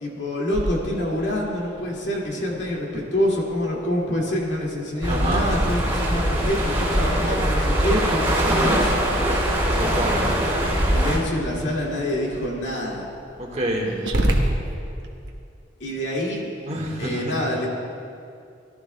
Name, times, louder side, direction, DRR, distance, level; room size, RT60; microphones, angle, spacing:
voice 1, 0.0-9.0 10.9-13.1 15.8-16.4 17.0-17.7, left 1 dB, 70° left, -3 dB, 2.1 m, -26 dB
Growling, 0.5-15.3, right 1 dB, 65° right, 1.0 m, -33 dB
sound 1, 5.0-11.2, right 1 dB, 15° right, 2.7 m, -22 dB
voice 2, 5.1-5.4 9.8-10.2 13.4-13.9 16.7-17.3, right 1 dB, 35° right, -1 dB, 1.5 m, -27 dB
17.5 x 12.5 x 2.2 m, 2.5 s
head